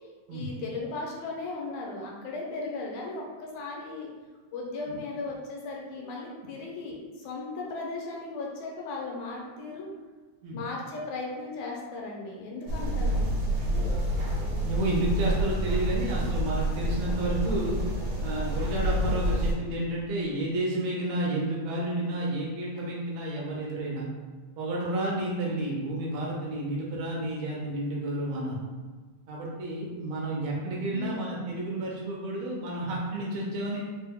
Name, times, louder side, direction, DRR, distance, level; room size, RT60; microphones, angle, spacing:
voice 1, 0.3-4.1 4.5-9.9 10.5-13.3 30.9-31.3, left 3 dB, 85° left, -2 dB, 2.0 m, -36 dB
sound 1, 12.7-19.5, equal, 55° right, 1.3 m, -28 dB
voice 2, 14.6-17.8 18.2-24.1 24.6-28.6 29.3-33.8, right 1 dB, 75° right, -3 dB, 1.7 m, -31 dB
4.5 x 2.2 x 3.4 m, 1.4 s
omnidirectional pair, 3.3 m